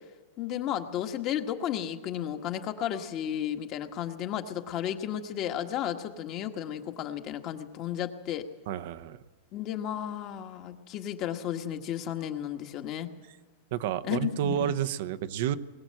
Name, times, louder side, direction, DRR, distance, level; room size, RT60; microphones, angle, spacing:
voice 1, 0.4-8.5 9.5-13.1 14.1-14.7, left 10 dB, 40° left, 6 dB, 1.6 m, -33 dB
voice 2, 8.7-9.2 13.7-15.6, right 11 dB, 65° right, 12 dB, 0.9 m, -30 dB
21.0 x 19.0 x 7.8 m, 1.3 s
supercardioid pair, 135°, 0 cm